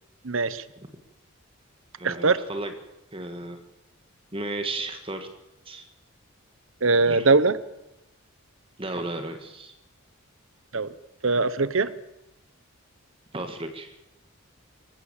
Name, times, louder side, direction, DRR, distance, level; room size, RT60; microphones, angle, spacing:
voice 1, 0.2-0.6 2.0-2.4 6.8-7.6 10.7-10.9 11.2-11.9, right 3 dB, 65° right, 15 dB, 1.0 m, -21 dB
voice 2, 2.0-2.7 3.1-3.6 4.3-5.3 5.7-5.9 7.1-7.3 8.8-9.7 13.3-14.0, right 2 dB, 25° right, 6 dB, 1.9 m, -34 dB
25.5 x 15.5 x 7.3 m, 0.92 s
head